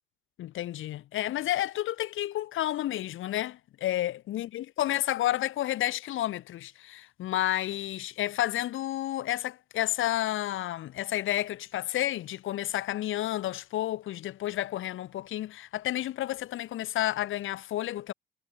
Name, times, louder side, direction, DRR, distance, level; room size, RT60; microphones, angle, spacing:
voice 1, 0.4-18.1, left 13 dB, 85° left, 7.5 m, -31 dB
cardioid pair, 90°, 20 cm